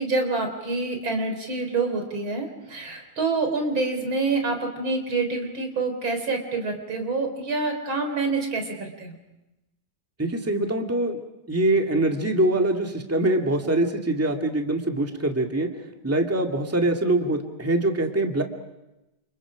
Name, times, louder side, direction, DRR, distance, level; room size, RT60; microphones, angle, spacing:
voice 1, 0.0-9.1, right 3 dB, 85° right, 5 dB, 4.7 m, -27 dB
voice 2, 10.2-11.2 11.5-15.7 16.0-18.4, right 1 dB, 5° right, 3 dB, 2.0 m, -23 dB
29.5 x 28.0 x 5.0 m, 0.95 s
omnidirectional pair, 2.1 m